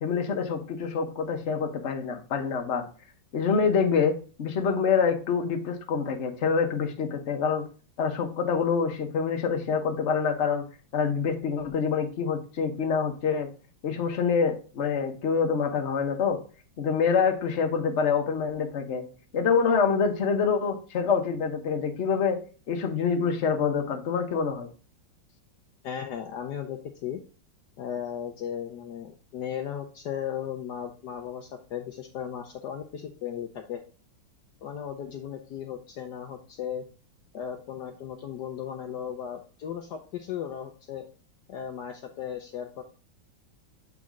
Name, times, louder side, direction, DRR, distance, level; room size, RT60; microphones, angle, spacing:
voice 1, 0.0-2.8 3.3-4.1 4.4-7.6 8.0-10.6 10.9-13.5 13.8-16.4 16.8-19.0 19.3-22.4 22.7-24.7, left 6 dB, 40° left, 4 dB, 1.2 m, -26 dB
voice 2, 25.8-27.2 27.8-33.8 34.6-36.9 37.3-41.0 41.5-42.8, left 9 dB, 65° left, 4 dB, 1.2 m, -36 dB
7.7 x 4.2 x 3.6 m, 0.37 s
omnidirectional pair, 2.1 m